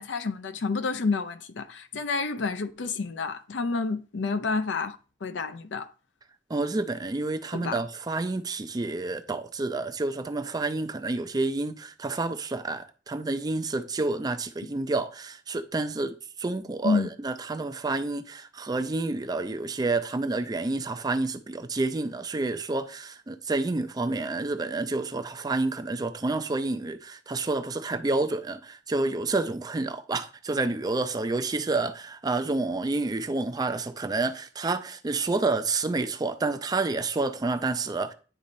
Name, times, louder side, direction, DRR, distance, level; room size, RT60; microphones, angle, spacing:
voice 1, 0.0-5.9 7.5-7.8 16.8-17.1, left 4 dB, 75° left, 0.6 m, -29 dB
voice 2, 6.5-38.1, right 3 dB, 20° right, 0.4 m, -29 dB
10.0 x 4.1 x 2.6 m
head